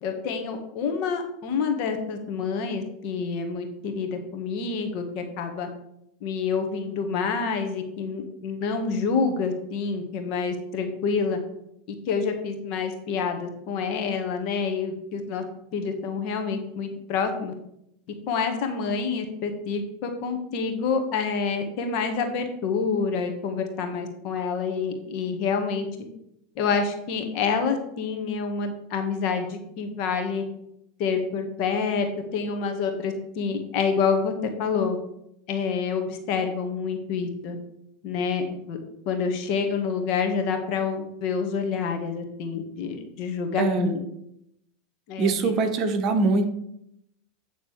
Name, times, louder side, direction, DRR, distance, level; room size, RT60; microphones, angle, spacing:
voice 1, 0.0-5.7 6.2-11.4 12.1-15.4 15.7-17.5 18.3-25.9 26.6-30.4 31.0-32.1 32.3-34.3 34.6-35.0 35.5-37.6 38.0-38.8 39.1-44.0 45.1-45.5, left 5 dB, 55° left, 5 dB, 1.8 m, -27 dB
voice 2, 43.6-43.9 45.2-46.5, right 3 dB, 45° right, 7 dB, 1.1 m, -22 dB
9.3 x 3.9 x 6.5 m, 0.78 s
hypercardioid pair, 110°, 0 cm